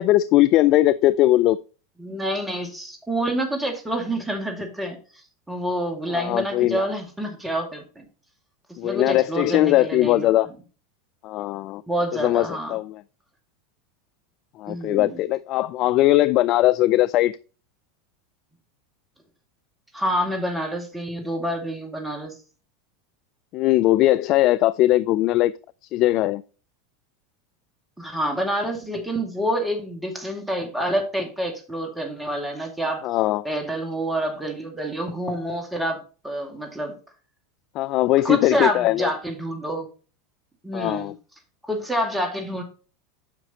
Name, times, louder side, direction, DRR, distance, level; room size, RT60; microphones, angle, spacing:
voice 1, 0.0-1.6 6.1-6.8 8.8-10.5 11.2-11.8 12.1-12.9 14.6-17.4 23.5-25.5 25.9-26.4 33.0-33.5 37.8-39.1 40.7-41.1, left 15 dB, 50° left, 0.3 m, -20 dB
voice 2, 2.0-8.1 8.8-10.3 11.9-12.8 14.7-15.2 19.9-22.4 28.0-33.1 33.4-36.0 36.2-36.9 38.2-39.9 40.6-41.1 41.7-42.6, right 1 dB, 10° right, 2.2 m, -27 dB
9.6 x 5.8 x 3.0 m
hypercardioid pair, 85°, 0 cm